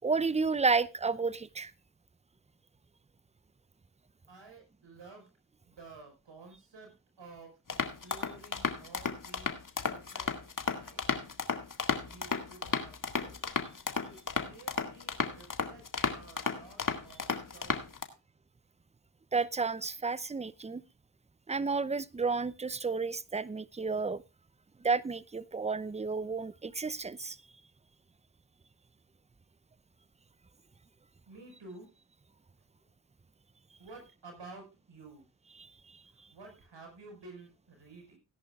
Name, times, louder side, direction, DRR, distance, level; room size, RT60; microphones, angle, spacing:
voice 1, 0.0-1.7 19.3-20.8 21.5-24.2 24.8-27.4 35.6-35.7, right 4 dB, 15° right, 0.6 m, -31 dB
voice 2, 4.3-5.3 5.7-6.9 7.2-7.8 8.0-9.6 9.9-11.0 12.0-13.4 14.1-15.9 16.1-17.9 31.3-31.9 33.8-35.3 36.3-38.2, right 3 dB, 60° right, 5.2 m, -52 dB
sound 1, 7.7-18.0, left 5 dB, 40° left, 2.0 m, -34 dB
18.0 x 10.5 x 2.4 m
supercardioid pair, 50°, 49 cm